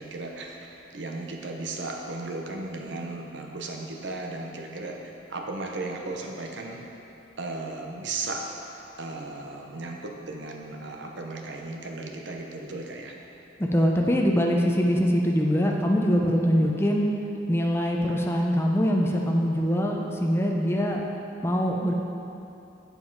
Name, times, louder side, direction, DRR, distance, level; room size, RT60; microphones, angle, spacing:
voice 1, 0.0-5.0 5.3-6.8 7.4-8.5 9.0-13.1, right 2 dB, 70° right, 2 dB, 0.8 m, -35 dB
voice 2, 13.6-17.1 17.5-21.0 21.4-21.9, equal, 15° left, 0 dB, 0.5 m, -23 dB
7.6 x 5.3 x 4.6 m, 2.9 s
head